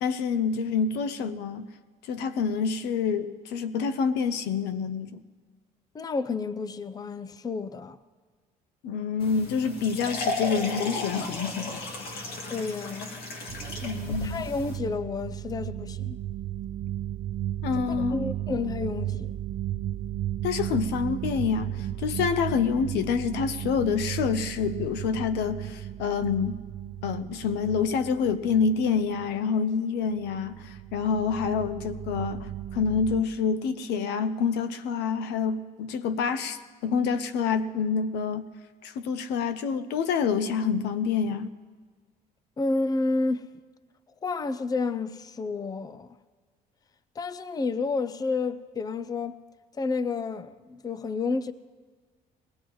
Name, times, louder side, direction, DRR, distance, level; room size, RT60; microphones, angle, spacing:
voice 1, 0.0-1.7 2.1-5.2 8.8-11.9 13.8-14.4 17.6-18.2 20.4-26.6 27.0-38.5 38.8-41.5, left 6 dB, 85° left, 0.8 m, -27 dB
voice 2, 5.9-8.0 12.5-13.1 14.1-16.2 17.7-19.3 42.6-43.4 44.2-46.1 47.2-49.4 49.8-51.5, left 3 dB, 20° left, 0.5 m, -30 dB
sound 1, 9.2-14.8, left 2 dB, 70° left, 2.1 m, -34 dB
sound 2, 13.5-29.4 30.1-33.2, right 12 dB, 60° right, 0.6 m, -35 dB
21.0 x 18.5 x 3.1 m
cardioid pair, 110°, 17 cm